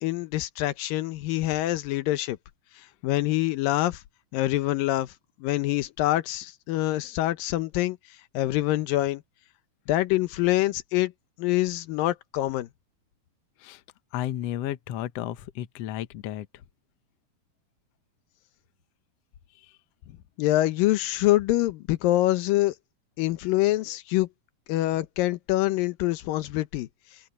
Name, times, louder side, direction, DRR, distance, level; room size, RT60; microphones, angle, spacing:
voice 1, 0.0-2.4 3.0-4.0 4.3-5.1 5.4-8.0 8.3-9.2 9.9-11.1 11.4-12.7 20.4-22.7 23.2-24.3 24.7-26.9, left 16 dB, 85° left, 2.6 m, -25 dB
voice 2, 14.1-16.5 19.6-19.7, left 12 dB, 65° left, 1.7 m, -33 dB
omnidirectional pair, 3.9 m